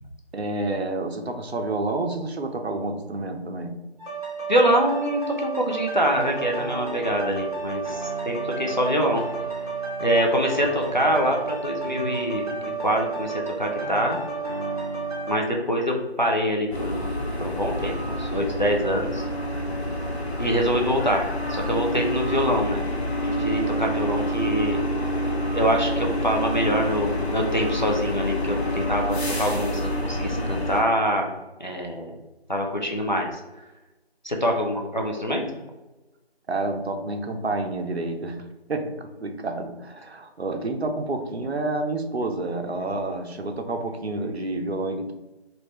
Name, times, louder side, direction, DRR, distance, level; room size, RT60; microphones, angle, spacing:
voice 1, 0.3-3.8 36.5-38.4 38.7-45.1, right 2 dB, 75° right, 5 dB, 0.7 m, -29 dB
sound 1, 4.0-15.4, right 4 dB, 35° right, 1.0 m, -31 dB
voice 2, 4.5-9.3 10.0-14.2 15.3-17.1 17.4-19.2 20.4-22.8 23.3-24.8 25.5-31.3 31.6-32.2 32.5-33.4 34.2-35.4, equal, 45° left, 0 dB, 0.5 m, -25 dB
sound 2, 16.7-30.8, equal, 75° left, 0.9 m, -27 dB
3.3 x 2.6 x 3.1 m, 1.1 s
figure-of-eight pair, 175°, 32 cm